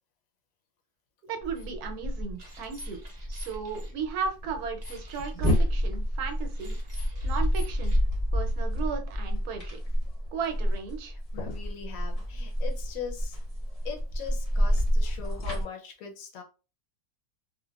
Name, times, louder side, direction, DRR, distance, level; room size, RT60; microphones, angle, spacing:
voice 1, 1.3-3.0 3.3-7.9 8.3-9.8 10.3-11.1, right 6 dB, 80° right, 5 dB, 1.1 m, -35 dB
sound 1, 1.4-15.6, equal, 30° left, 0.7 m, -29 dB
sound 2, 1.5-1.7 2.4-3.9 4.8-5.7 6.5-8.0, left 1 dB, 45° right, 0.6 m, -48 dB
voice 2, 11.3-13.4 13.8-16.4, left 6 dB, 70° left, 2 dB, 1.0 m, -40 dB
3.1 x 2.1 x 2.2 m, 0.32 s
omnidirectional pair, 1.6 m